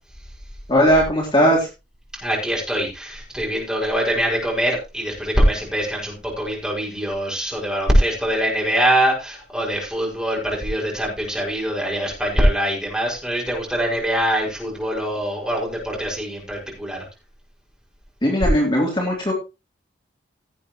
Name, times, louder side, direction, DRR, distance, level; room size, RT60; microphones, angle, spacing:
voice 1, 0.7-1.7 18.2-19.3, equal, 25° left, -2 dB, 3.4 m, -18 dB
voice 2, 2.1-17.0, equal, 5° right, -2 dB, 5.8 m, -23 dB
17.5 x 8.4 x 3.1 m, 0.27 s
head